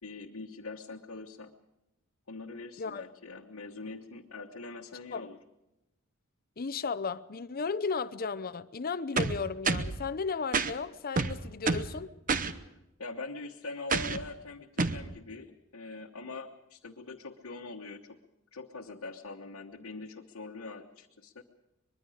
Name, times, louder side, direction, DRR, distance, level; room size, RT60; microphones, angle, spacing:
voice 1, 0.0-1.5 2.3-5.4 13.0-18.2 18.5-21.4, left 3 dB, 85° left, 1.3 m, -43 dB
voice 2, 6.6-12.1, left 5 dB, 45° left, 0.7 m, -34 dB
sound 1, 9.2-10.0 10.5-10.7 11.2-11.9 12.3-12.5 13.9-14.2 14.8-15.0, right 4 dB, 40° right, 0.9 m, -28 dB
24.0 x 21.5 x 5.0 m
head